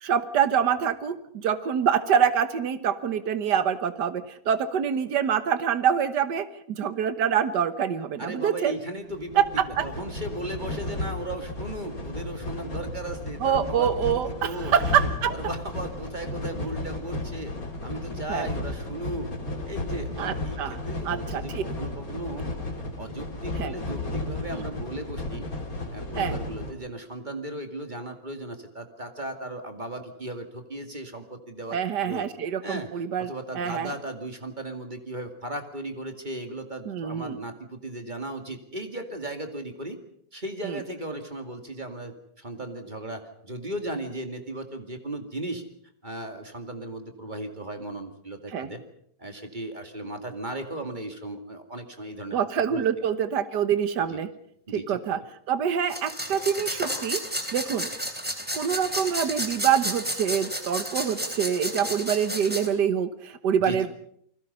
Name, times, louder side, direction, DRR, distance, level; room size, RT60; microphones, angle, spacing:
voice 1, 0.0-8.8 9.4-9.9 13.4-15.3 18.3-18.5 20.2-21.6 23.6-23.7 26.2-26.4 31.7-33.9 36.9-37.4 40.6-40.8 48.5-48.7 52.3-54.3 54.7-55.2 55.5-57.2 57.5-57.9 58.5-63.9, right 8 dB, 75° right, 11 dB, 1.8 m, -25 dB
voice 2, 8.2-14.7 15.3-17.5 17.8-19.3 19.7-22.5 23.0-25.5 25.9-32.3 32.6-40.0 40.3-45.6 46.0-48.8 49.2-52.9 54.1-54.2 54.7-55.2 63.6-63.9, right 1 dB, 25° right, 6 dB, 2.3 m, -36 dB
sound 1, 9.1-26.7, left 2 dB, 55° left, 3.7 m, -34 dB
sound 2, 55.9-62.7, equal, 5° right, 3.4 m, -32 dB
29.5 x 20.5 x 5.5 m, 0.68 s
omnidirectional pair, 1.9 m